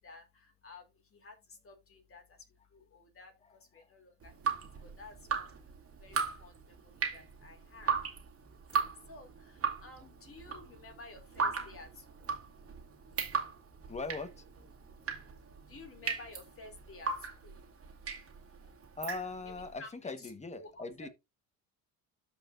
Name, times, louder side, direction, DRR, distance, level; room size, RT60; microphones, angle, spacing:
voice 1, 0.0-8.1 8.9-13.9 14.7-19.0 19.4-19.5 19.8-21.1, left 3 dB, 35° left, 2.8 m, -54 dB
Drip, 4.2-19.7, right 5 dB, 40° right, 2.2 m, -37 dB
voice 2, 13.9-14.3 19.0-21.1, left 3 dB, 20° left, 1.3 m, -40 dB
13.0 x 4.6 x 2.6 m
cardioid pair, 110°, 37 cm